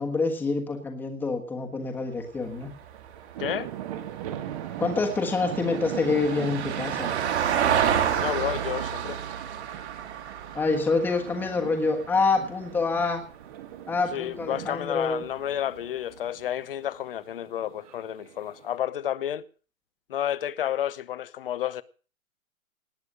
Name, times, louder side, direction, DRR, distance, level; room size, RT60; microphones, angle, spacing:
voice 1, 0.0-2.7 4.8-7.1 10.5-13.3 13.9-15.2, left 4 dB, 5° left, 1.3 m, -26 dB
Vehicle, 2.3-12.8 15.1-15.2, right 9 dB, 50° right, 2.4 m, -30 dB
sound 1, 2.4-18.8, right 11 dB, 25° right, 1.1 m, -40 dB
voice 2, 3.4-3.7 8.2-9.2 14.1-19.4 20.1-21.8, left 11 dB, 40° left, 0.8 m, -31 dB
19.0 x 8.1 x 6.5 m
hypercardioid pair, 160°, 41 cm